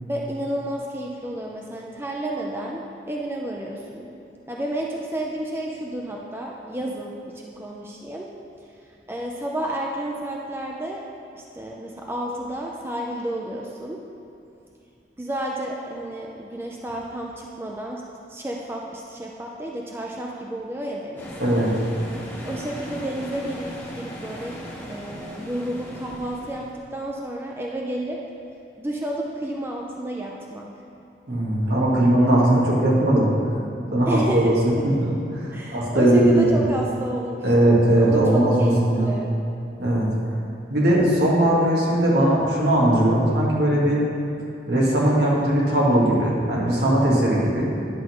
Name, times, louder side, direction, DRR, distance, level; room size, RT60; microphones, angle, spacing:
voice 1, 0.0-4.1 4.5-8.3 9.1-11.0 11.3-14.0 15.2-18.0 18.3-21.3 22.4-24.6 24.9-28.2 28.8-30.7 34.1-34.9 35.5-39.4, right 1 dB, 15° right, -1 dB, 0.5 m, -31 dB
sound 1, 21.2-26.8, equal, 10° left, 1.1 m, -37 dB
voice 2, 21.4-21.7 31.3-33.3 33.9-34.5 34.8-36.6 37.4-39.1 39.8-40.1 40.7-44.0 44.7-47.7, right 1 dB, 70° right, -5 dB, 1.9 m, -19 dB
10.5 x 3.8 x 6.3 m, 2.7 s
head